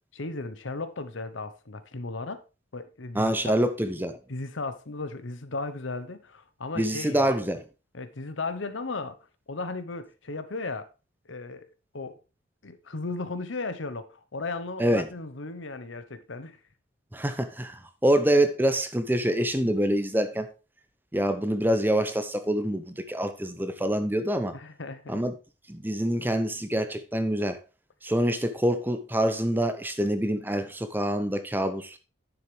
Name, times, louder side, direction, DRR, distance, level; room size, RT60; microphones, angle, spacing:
voice 1, 0.2-2.4 2.7-3.5 4.3-7.2 7.9-9.2 9.5-10.9 11.3-11.7 11.9-12.2 12.6-16.6 24.5-25.2, left 3 dB, 80° left, 1.0 m, -35 dB
voice 2, 3.1-4.2 6.8-7.6 14.8-15.1 17.1-20.5 21.1-24.5 25.1-25.3 25.7-27.6 28.0-32.0, right 1 dB, 10° right, 0.7 m, -26 dB
10.0 x 7.2 x 3.3 m
head